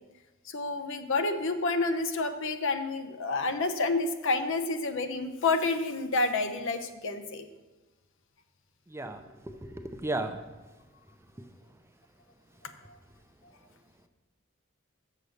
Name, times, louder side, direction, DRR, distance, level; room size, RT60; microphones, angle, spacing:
voice 1, 0.5-7.4, left 3 dB, 65° left, 9 dB, 0.7 m, -29 dB
voice 2, 8.9-10.4, right 2 dB, 10° right, 6 dB, 0.5 m, -35 dB
7.0 x 6.6 x 6.4 m, 1.2 s
head